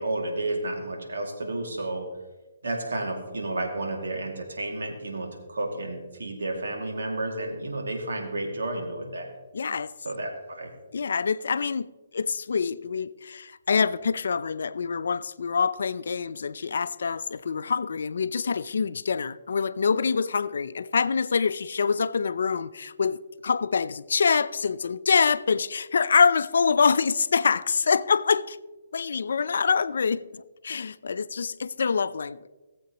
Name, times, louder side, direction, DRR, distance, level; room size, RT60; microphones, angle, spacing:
voice 1, 0.0-2.1 2.6-9.3 10.0-10.7, right 2 dB, 80° right, 2.2 m, -31 dB
voice 2, 9.5-9.9 10.9-28.6 28.9-32.5, left 5 dB, 70° left, 0.5 m, -25 dB
18.5 x 7.8 x 3.0 m
hypercardioid pair, 140°, 0 cm